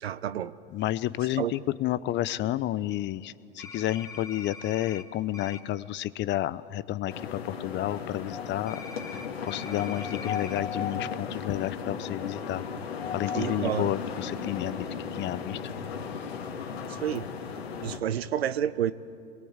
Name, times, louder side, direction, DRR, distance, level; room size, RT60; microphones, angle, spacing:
voice 1, 0.0-0.5 1.4-1.5 13.3-13.9 16.9-17.3 17.8-18.9, right 10 dB, 85° right, 15 dB, 1.0 m, -29 dB
voice 2, 0.7-8.8 9.4-12.6 13.1-14.9 15.1-15.7, left 14 dB, 35° left, 17 dB, 0.8 m, -31 dB
sound 1, 3.6-5.0 5.3-5.6 8.7-10.6, left 4 dB, 10° left, 2.9 m, -43 dB
sound 2, 7.1-18.0, left 6 dB, 85° left, 2.7 m, -35 dB
27.5 x 22.5 x 8.2 m, 2.5 s
hypercardioid pair, 100°, 30 cm